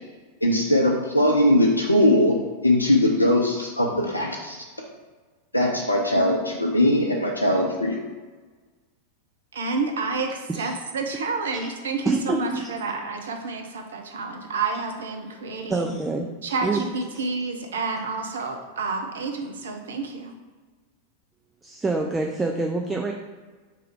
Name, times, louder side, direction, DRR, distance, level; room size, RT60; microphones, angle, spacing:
voice 1, 0.4-2.4 2.6-4.6 5.5-8.0, left 1 dB, 85° left, -1 dB, 0.5 m, -20 dB
voice 2, 9.5-15.9 16.4-20.3, right 4 dB, 65° right, 4 dB, 0.6 m, -29 dB
voice 3, 12.1-12.7 15.7-16.3 16.6-16.8 21.6-23.1, right 3 dB, 10° right, 2 dB, 0.4 m, -26 dB
3.4 x 3.3 x 4.6 m, 1.4 s
figure-of-eight pair, 90°, 0 cm